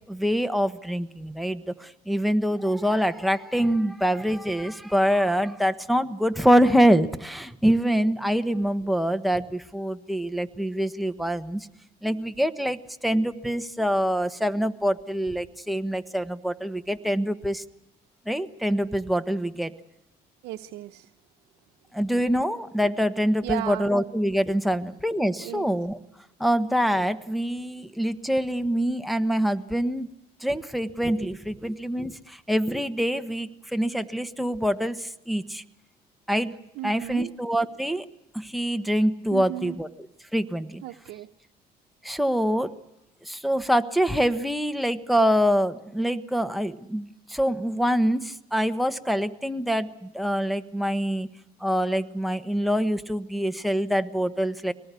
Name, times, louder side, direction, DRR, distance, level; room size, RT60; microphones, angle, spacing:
voice 1, 0.1-11.7 12.0-17.6 18.3-19.7 21.9-26.0 26.4-30.1 30.4-35.6 36.3-36.5 36.8-38.1 38.3-39.9 40.3-40.8 42.0-42.7 43.3-51.3 51.6-54.7, equal, ahead, 11 dB, 1.2 m, -25 dB
voice 2, 20.4-21.1 23.4-23.9 25.4-25.7 36.8-37.3 39.3-39.8 40.8-41.3, right 15 dB, 85° right, 4 dB, 0.9 m, -35 dB
24.5 x 19.5 x 8.3 m, 0.88 s
cardioid pair, 110°, 17 cm